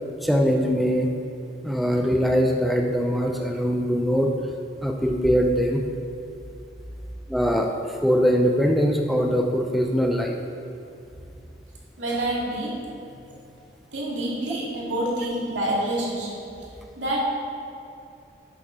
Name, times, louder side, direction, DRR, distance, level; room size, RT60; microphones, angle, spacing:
voice 1, 0.2-1.1 1.6-4.3 4.8-5.8 7.3-10.4, equal, ahead, 2 dB, 0.5 m, -22 dB
voice 2, 12.0-13.4 13.9-16.4 17.0-17.2, right 1 dB, 90° right, -5 dB, 2.5 m, -28 dB
11.0 x 7.2 x 4.0 m, 2.6 s
head